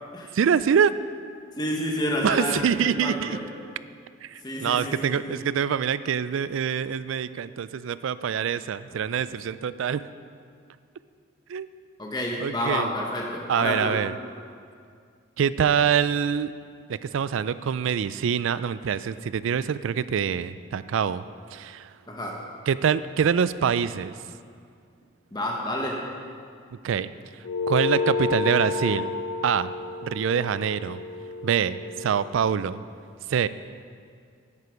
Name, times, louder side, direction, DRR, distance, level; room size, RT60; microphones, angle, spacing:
voice 1, 0.3-0.9 2.2-3.4 4.2-10.0 11.5-11.7 12.4-12.9 13.5-14.1 15.4-16.5 16.9-21.2 21.5-21.9 22.7-24.2 26.8-27.1 27.7-29.1 29.4-29.7 30.0-31.0 31.4-32.8 33.3-33.5, right 7 dB, 75° right, 15 dB, 0.3 m, -25 dB
voice 2, 1.6-3.4 4.4-5.4 12.0-14.0 22.1-22.4 25.3-26.0, left 1 dB, 20° left, -1 dB, 1.2 m, -29 dB
sound 1, 27.4-32.2, left 4 dB, 85° left, 0.5 m, -30 dB
9.8 x 9.3 x 5.2 m, 2.2 s
head